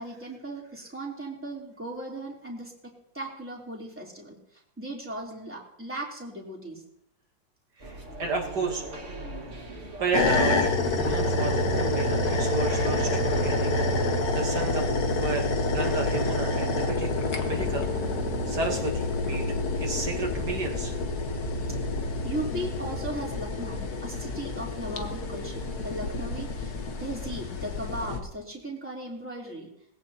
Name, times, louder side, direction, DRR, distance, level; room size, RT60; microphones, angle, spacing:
voice 1, 0.0-4.4 4.8-6.8 22.2-29.7, right 1 dB, 5° right, -3 dB, 3.3 m, -37 dB
sound 1, 7.8-14.9, right 1 dB, 40° right, 2.3 m, -40 dB
voice 2, 7.8-8.8 10.0-10.7 11.0-13.8 14.3-18.1 18.4-19.5 19.8-21.0, right 3 dB, 65° right, 1 dB, 1.9 m, -32 dB
sound 2, 10.1-28.2, left 2 dB, 55° left, 1.7 m, -28 dB
21.0 x 15.5 x 2.9 m, 0.75 s
omnidirectional pair, 2.0 m